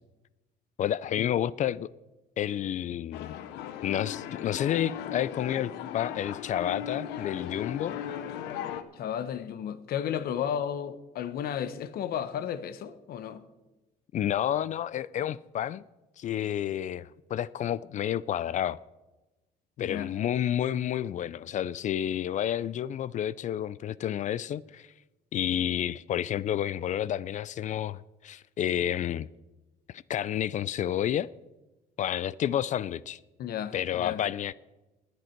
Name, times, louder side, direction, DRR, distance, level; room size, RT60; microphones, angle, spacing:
voice 1, 0.8-1.9 2.4-3.3 3.8-7.9 14.1-15.8 16.2-18.8 19.8-24.9 25.3-29.3 29.9-31.3 32.0-33.2 33.7-34.5, left 10 dB, 45° left, 0.4 m, -30 dB
sound 1, 3.1-8.8, left 10 dB, 90° left, 0.9 m, -37 dB
voice 2, 8.9-13.4 19.8-20.1 33.4-34.2, left 9 dB, 65° left, 0.9 m, -33 dB
20.0 x 8.1 x 4.5 m
cardioid pair, 110°, 17 cm